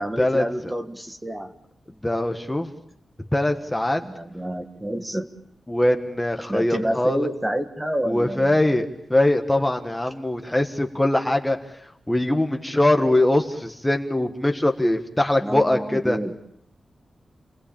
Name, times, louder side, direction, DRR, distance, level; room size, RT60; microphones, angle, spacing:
voice 1, 0.0-1.5 4.0-5.3 6.5-8.6 15.4-16.3, right 1 dB, 10° right, 7 dB, 1.6 m, -28 dB
voice 2, 2.0-2.7 3.3-4.0 5.7-7.3 8.1-11.6 12.1-16.2, left 1 dB, 10° left, 5 dB, 1.4 m, -22 dB
29.0 x 19.0 x 8.8 m, 0.75 s
wide cardioid pair, 155°, 0 cm